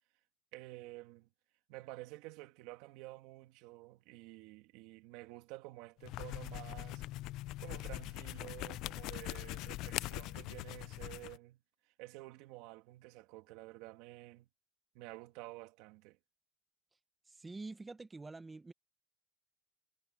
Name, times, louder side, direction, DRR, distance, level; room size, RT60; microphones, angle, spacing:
voice 1, 0.5-1.3 1.7-7.0 7.6-11.6 12.0-14.5 14.9-16.2, right 19 dB, 75° right, 2.4 m, -51 dB
sound 1, 6.0-11.4, left 18 dB, 60° left, 0.4 m, -42 dB
voice 2, 17.3-18.7, right 3 dB, 15° right, 1.0 m, -47 dB
cardioid pair, 150°, 0 cm